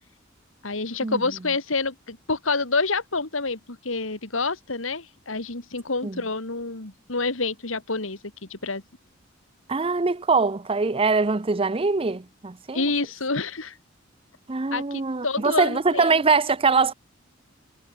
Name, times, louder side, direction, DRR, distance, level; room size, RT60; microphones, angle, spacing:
voice 1, 0.6-8.2 8.5-8.8 12.7-13.8 14.7-16.2, left 3 dB, 85° left, 2.7 m, -28 dB
voice 2, 9.7-12.8 14.5-16.9, right 4 dB, 30° right, 0.7 m, -23 dB
head